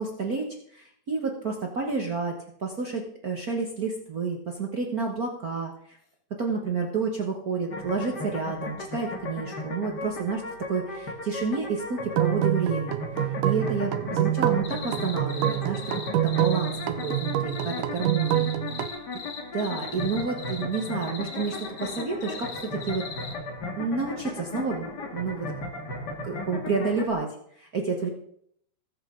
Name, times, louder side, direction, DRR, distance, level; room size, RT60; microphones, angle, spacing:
voice 1, 0.0-5.7 6.4-10.4 10.7-13.0 13.4-15.8 16.2-18.5 19.5-23.0 23.8-25.5 26.2-28.1, right 4 dB, 55° right, 1 dB, 1.0 m, -30 dB
sound 1, 7.7-27.1, left 2 dB, 40° left, 2.0 m, -36 dB
sound 2, 12.0-18.9, right 13 dB, 85° right, 2.3 m, -27 dB
sound 3, 14.6-23.3, left 6 dB, 90° left, 3.4 m, -40 dB
21.0 x 7.8 x 3.7 m, 0.68 s
omnidirectional pair, 3.6 m